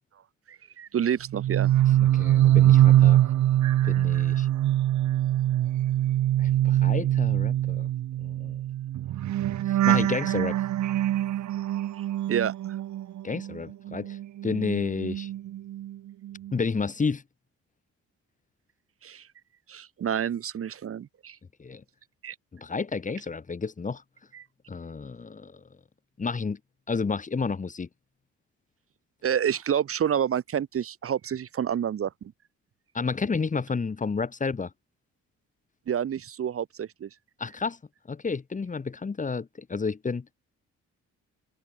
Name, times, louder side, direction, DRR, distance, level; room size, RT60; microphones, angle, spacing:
voice 1, 0.5-1.7 12.0-12.8 19.0-19.3 19.7-21.4 22.2-22.3 24.3-24.4 29.2-32.3 35.9-37.1, right 9 dB, 50° right, 1.1 m, -29 dB
sound 1, 1.3-13.6 13.9-15.9 16.2-16.6, right 13 dB, 70° right, 1.5 m, -23 dB
voice 2, 2.0-3.2 3.8-4.5 6.4-7.9 8.2-8.6 9.7-10.6 13.2-14.2 14.4-15.3 16.5-17.2 21.6-21.8 22.5-24.0 24.7-25.6 26.2-26.6 26.9-27.9 32.9-34.7 37.4-37.8 38.1-40.3, left 4 dB, 25° left, 1.2 m, -31 dB
cardioid pair, 90°, 30 cm